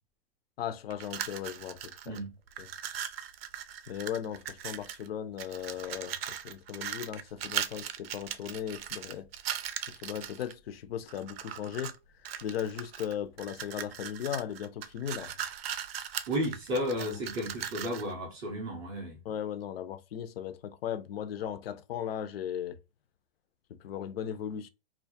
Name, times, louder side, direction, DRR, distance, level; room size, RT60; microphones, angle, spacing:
voice 1, 0.6-2.2 2.6-2.7 3.9-9.3 9.9-12.0 12.4-15.3 17.1-17.2 19.2-22.8 23.7-24.7, left 9 dB, 80° left, 0.4 m, -37 dB
sound 1, 0.9-2.2 2.5-5.1 5.4-10.5 11.1-12.0 12.2-18.1, right 9 dB, 85° right, 0.4 m, -39 dB
voice 2, 16.3-19.2, equal, 15° right, 0.3 m, -33 dB
2.3 x 2.1 x 2.6 m
hypercardioid pair, 140°, 29 cm